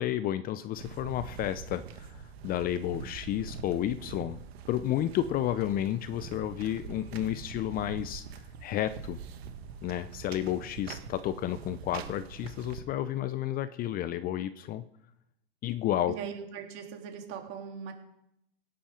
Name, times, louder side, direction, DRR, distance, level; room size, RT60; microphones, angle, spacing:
voice 1, 0.0-4.4 4.7-8.3 8.6-9.2 9.8-14.8 15.6-16.1, left 12 dB, 30° left, 14 dB, 0.6 m, -31 dB
sound 1, 0.7-12.8, right 6 dB, 70° right, 1.7 m, -44 dB
voice 2, 16.1-17.9, right 7 dB, 45° right, 3 dB, 3.3 m, -40 dB
17.0 x 10.0 x 5.1 m, 0.81 s
hypercardioid pair, 115°, 32 cm